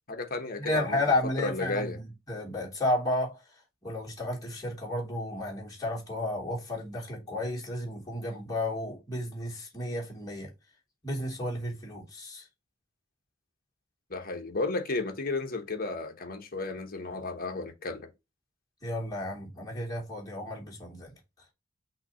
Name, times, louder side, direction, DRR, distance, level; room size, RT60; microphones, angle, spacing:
voice 1, 0.1-2.0 14.1-18.1, left 3 dB, 45° left, 1.3 m, -33 dB
voice 2, 0.6-3.4 3.8-10.5 11.0-12.4 18.8-21.1, left 1 dB, 15° left, 2.9 m, -32 dB
5.9 x 3.0 x 5.6 m
head